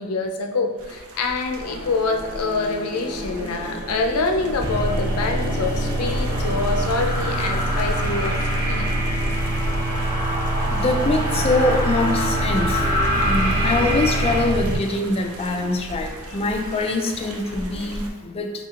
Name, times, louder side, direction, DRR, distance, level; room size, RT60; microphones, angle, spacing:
voice 1, 0.0-8.9, left 3 dB, 85° left, 3 dB, 0.5 m, -26 dB
sound 1, 0.8-18.1, right 1 dB, 75° right, 0.6 m, -35 dB
sound 2, 1.6-14.4, equal, 55° right, 1.2 m, -28 dB
sound 3, 4.6-14.7, right 1 dB, 35° right, 0.9 m, -25 dB
voice 2, 10.7-12.8 13.1-18.5, left 2 dB, 25° left, 4 dB, 0.3 m, -24 dB
4.3 x 3.6 x 2.4 m, 1.2 s
head